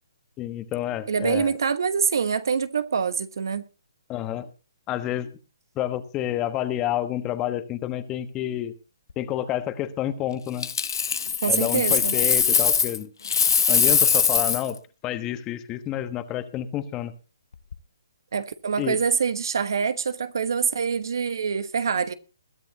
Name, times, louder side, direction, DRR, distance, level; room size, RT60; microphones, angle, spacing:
voice 1, 0.4-1.6 4.1-4.5 4.9-5.3 5.8-8.7 9.2-10.7 11.5-13.1 13.7-14.8 15.0-17.1 18.8-19.0, left 12 dB, 20° left, 1.2 m, -29 dB
voice 2, 1.1-3.6 11.4-12.2 18.3-22.1, right 6 dB, 70° right, 1.1 m, -25 dB
Coin (dropping), 10.6-13.0 13.2-14.7 17.5-17.7, left 6 dB, 70° left, 0.8 m, -21 dB
21.0 x 11.5 x 2.8 m
hypercardioid pair, 140°, 2 cm